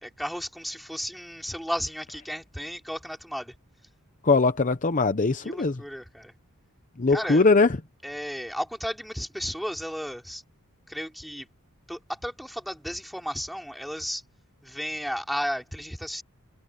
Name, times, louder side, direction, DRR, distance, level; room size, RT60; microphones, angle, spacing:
voice 1, 0.0-3.5 5.4-6.3 7.1-7.4 8.0-10.4 10.9-11.5 11.9-14.2 14.6-16.2, equal, ahead, 4.1 m, -34 dB
voice 2, 4.2-5.8 7.0-7.8, left 3 dB, 35° left, 0.7 m, -21 dB
head